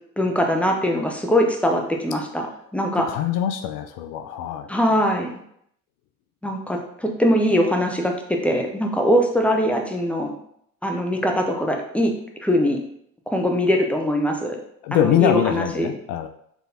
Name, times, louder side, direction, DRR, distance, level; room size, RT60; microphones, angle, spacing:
voice 1, 0.2-3.1 4.7-5.3 6.4-8.1 8.4-10.3 10.8-12.1 12.4-12.8 13.3-14.6 14.9-15.9, equal, 5° left, 2 dB, 0.6 m, -22 dB
voice 2, 3.1-4.7 14.8-16.3, left 10 dB, 55° left, 7 dB, 0.5 m, -23 dB
4.3 x 3.3 x 2.7 m, 0.70 s
hypercardioid pair, 65°, 45 cm